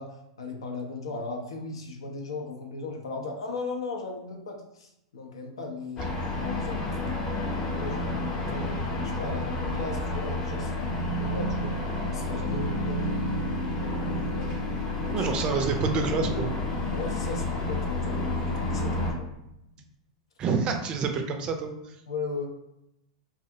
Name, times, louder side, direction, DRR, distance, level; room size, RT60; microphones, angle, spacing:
voice 1, 0.0-7.3 7.8-11.8 12.1-14.6 15.0-15.3 16.9-19.3 22.1-22.5, left 3 dB, 75° left, 2 dB, 0.5 m, -37 dB
sound 1, 6.0-19.1, left 1 dB, 30° left, 0.7 m, -30 dB
voice 2, 15.1-16.5 20.4-22.0, right 5 dB, 35° right, 5 dB, 0.4 m, -27 dB
2.4 x 2.0 x 2.7 m, 0.83 s
hypercardioid pair, 100°, 3 cm